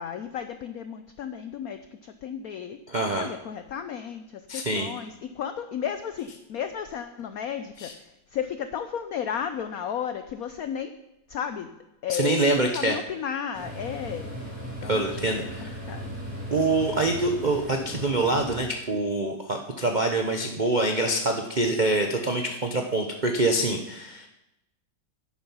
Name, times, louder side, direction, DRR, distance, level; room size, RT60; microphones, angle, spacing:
voice 1, 0.0-2.8 3.2-5.1 5.4-7.9 8.3-10.9 11.3-11.7 12.0-14.3 14.8-15.5 15.9-16.0, left 8 dB, 80° left, 10 dB, 0.8 m, -33 dB
voice 2, 2.9-3.3 4.5-4.9 7.8-7.9 12.1-13.0 14.8-15.7 16.5-24.3, right 2 dB, 60° right, 3 dB, 0.4 m, -25 dB
sound 1, 13.5-18.6, equal, 45° right, 5.8 m, -37 dB
10.5 x 8.7 x 5.5 m, 0.91 s
omnidirectional pair, 2.2 m